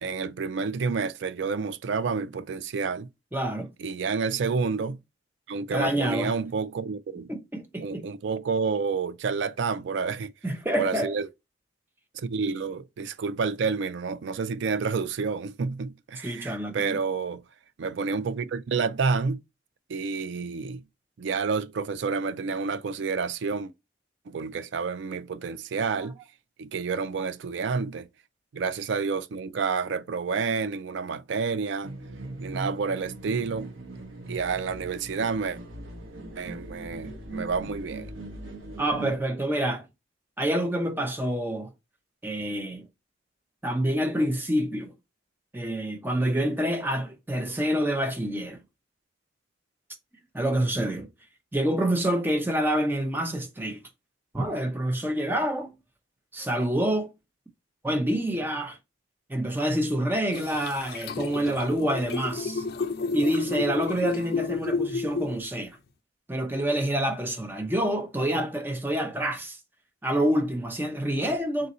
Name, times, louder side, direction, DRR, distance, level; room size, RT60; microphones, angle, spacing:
voice 1, 0.0-3.1 3.8-5.0 5.5-7.3 7.8-10.3 10.8-11.3 12.1-17.4 17.8-19.4 19.9-20.8 21.2-23.7 24.3-26.2 26.6-28.1 28.5-31.9 32.4-33.7 34.3-35.6 36.4-38.1, right 5 dB, 70° right, 0.4 m, -29 dB
voice 2, 3.3-3.7 5.7-6.3 7.3-8.1 10.4-11.1 16.2-17.0 26.0-26.1 38.8-39.9 40.4-41.7 42.2-42.8 43.6-44.9 45.5-48.6 50.3-51.1 51.5-53.8 54.3-55.7 56.3-57.1 57.8-58.8 59.3-62.7 63.1-65.8 66.3-69.6 70.0-71.7, right 1 dB, 10° right, 0.6 m, -27 dB
sound 1, 31.8-39.2, right 2 dB, 90° right, 0.9 m, -40 dB
sound 2, 60.3-65.7, left 4 dB, 50° left, 0.4 m, -31 dB
3.8 x 2.6 x 4.0 m
head